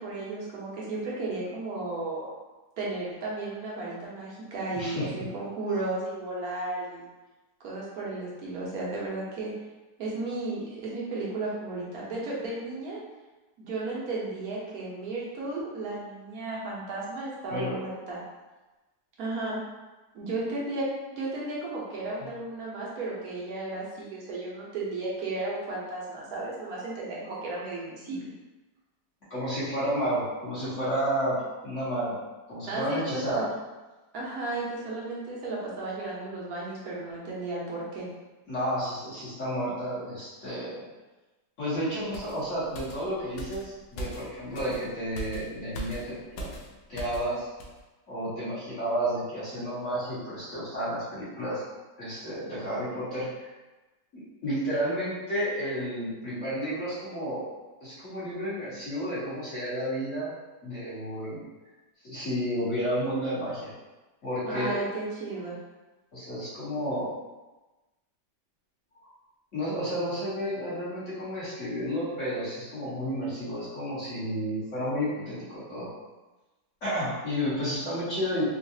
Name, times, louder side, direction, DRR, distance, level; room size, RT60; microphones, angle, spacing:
voice 1, 0.0-2.3 2.8-7.1 7.6-9.5 10.0-13.0 13.6-18.2 19.2-19.6 20.1-20.9 21.1-28.3 32.7-33.5 34.1-38.1 64.5-65.6, right 2 dB, 60° right, -5 dB, 1.2 m, -34 dB
voice 2, 4.7-5.1 17.5-17.8 22.2-22.3 29.3-32.2 32.5-33.4 38.5-40.8 41.6-46.5 46.9-47.5 48.1-51.6 52.0-53.5 54.1-57.5 57.8-60.3 60.6-61.4 62.0-63.7 64.2-64.8 66.1-67.1 68.9-69.1 69.5-75.9 76.8-78.5, equal, 45° left, -11 dB, 1.7 m, -31 dB
sound 1, 42.1-47.3 47.6-47.8, right 1 dB, 80° left, 1.2 m, -41 dB
3.8 x 2.5 x 2.7 m, 1.1 s
omnidirectional pair, 2.0 m